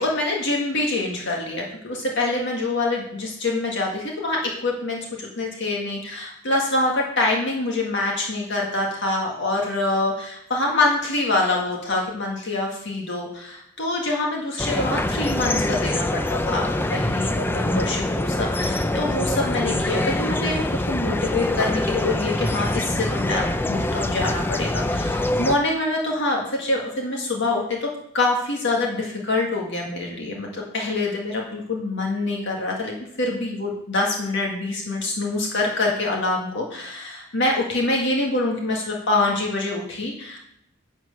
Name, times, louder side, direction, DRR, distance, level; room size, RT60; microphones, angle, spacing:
voice 1, 0.0-16.6 16.9-27.9 28.1-40.4, left 2 dB, 55° left, -1 dB, 1.8 m, -25 dB
sound 1, 14.6-25.6, left 1 dB, 10° left, 0.4 m, -24 dB
11.0 x 4.6 x 6.7 m, 0.76 s
head